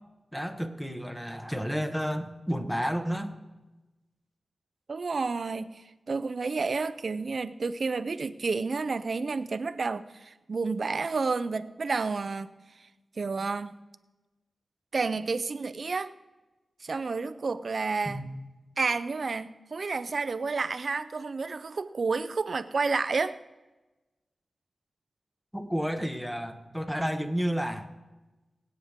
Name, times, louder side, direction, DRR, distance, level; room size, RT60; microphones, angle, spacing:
voice 1, 0.3-3.3 18.0-18.3 25.5-27.9, equal, 5° left, 7 dB, 1.3 m, -31 dB
voice 2, 4.9-12.5 12.8-12.9 13.2-13.7 14.9-16.1 16.8-18.2 18.8-23.4, right 4 dB, 60° right, 13 dB, 0.6 m, -30 dB
23.0 x 8.8 x 3.7 m, 1.1 s
wide cardioid pair, 70°, 0 cm